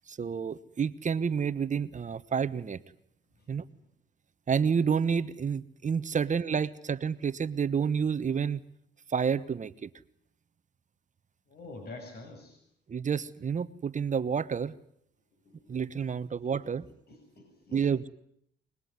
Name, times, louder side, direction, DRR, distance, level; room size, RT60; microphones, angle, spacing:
voice 1, 0.1-2.8 3.5-3.6 4.5-8.6 9.1-9.9 12.9-14.8 15.7-16.9 17.7-18.1, right 6 dB, 40° right, 13 dB, 1.2 m, -29 dB
voice 2, 11.5-12.6 15.5-15.8 17.1-17.9, left 2 dB, 55° left, 4 dB, 6.9 m, -46 dB
25.0 x 20.5 x 9.7 m, 0.72 s
cardioid pair, 90°, 20 cm